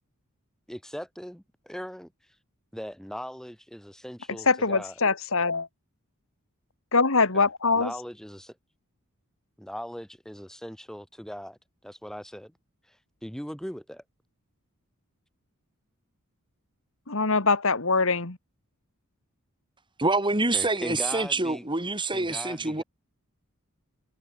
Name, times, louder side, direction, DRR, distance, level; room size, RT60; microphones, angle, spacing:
voice 1, 0.7-2.1 2.7-4.9 7.3-8.6 9.6-11.6 11.8-12.5 13.2-14.0 20.5-21.6 22.1-22.8, equal, ahead, 7.1 m, -39 dB
voice 2, 4.5-5.7 6.9-7.9 17.1-18.4, left 4 dB, 70° left, 2.4 m, -23 dB
voice 3, 20.0-22.8, right 3 dB, 25° right, 4.5 m, -26 dB
head